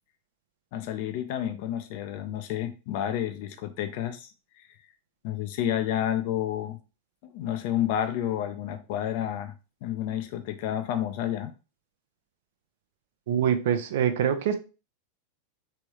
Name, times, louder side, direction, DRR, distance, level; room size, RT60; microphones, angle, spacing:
voice 1, 0.7-4.3 4.6-4.7 5.2-6.8 7.3-9.5 9.8-11.5, left 11 dB, 50° left, 0.5 m, -30 dB
voice 2, 13.3-14.6, right 9 dB, 55° right, 0.5 m, -24 dB
3.4 x 3.2 x 3.0 m
figure-of-eight pair, 90°, 0 cm